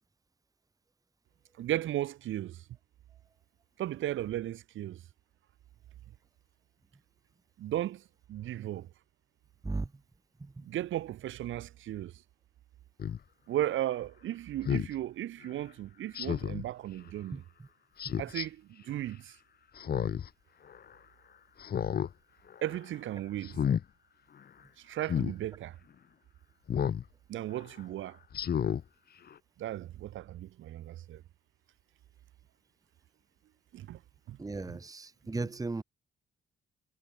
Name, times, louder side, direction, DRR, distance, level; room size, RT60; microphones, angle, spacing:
voice 1, 1.6-2.6 3.8-5.0 7.6-8.0 8.3-8.9 10.7-12.1 13.5-17.4 18.2-18.6 18.9-19.2 22.6-23.5 24.9-25.7 27.3-28.2 29.6-31.2 33.7-34.0 34.3-34.4 34.7-34.8, right 13 dB, 80° right, 3.6 m, -35 dB
Speech synthesizer, 13.0-13.2 14.6-14.9 16.1-16.6 18.0-18.5 19.8-20.3 20.7-20.8 21.6-22.1 22.5-22.8 23.4-23.8 25.0-25.3 26.7-27.0 27.5-27.6 28.3-28.8 29.3-29.4, left 8 dB, 50° left, 1.6 m, -31 dB
voice 2, 17.3-17.7 18.0-18.2 34.4-35.8, right 3 dB, 15° right, 1.4 m, -37 dB
cardioid pair, 90°, 20 cm